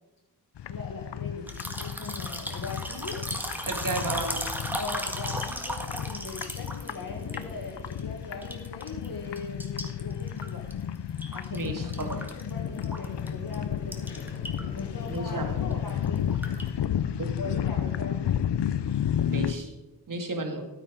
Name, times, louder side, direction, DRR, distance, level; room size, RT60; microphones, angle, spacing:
sound 1, 0.6-19.5, left 9 dB, 80° left, 0.6 m, -32 dB
voice 1, 0.7-1.4 1.8-3.3 4.8-10.7 11.3-14.3 14.7-16.4 17.4-18.4, left 4 dB, 55° left, 0 dB, 1.5 m, -40 dB
sound 2, 1.5-8.0 8.3-9.1 9.4-11.7 11.9-13.3 13.5-13.6 13.9-14.8 15.1-15.3 15.7-16.7, equal, 5° right, 1.7 m, -36 dB
voice 2, 3.7-4.5 11.5-12.3 15.1-15.5 17.2-17.6 19.3-19.7 20.1-20.7, right 2 dB, 50° right, 5 dB, 1.8 m, -33 dB
sound 3, 7.0-9.8 12.5-17.9, left 1 dB, 20° left, 4.6 m, -48 dB
13.0 x 8.8 x 4.9 m, 1.1 s
wide cardioid pair, 70°, 41 cm